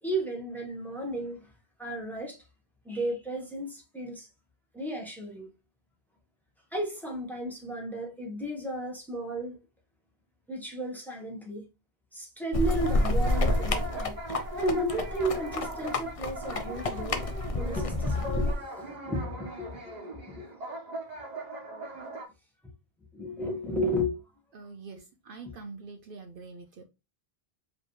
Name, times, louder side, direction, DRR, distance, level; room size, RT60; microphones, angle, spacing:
voice 1, 0.0-1.5 1.8-2.4 2.8-4.3 4.7-5.5 6.7-9.6 10.5-11.6 12.1-14.2 14.5-17.2 17.6-20.7 23.1-24.2 25.4-25.5, equal, ahead, 1.1 m, -33 dB
sound 1, 12.5-18.5, left 2 dB, 40° left, 0.6 m, -29 dB
sound 2, 12.6-22.2, right 2 dB, 45° right, 1.2 m, -40 dB
voice 2, 24.5-26.8, right 4 dB, 65° right, 0.7 m, -45 dB
5.0 x 3.0 x 3.1 m
omnidirectional pair, 1.1 m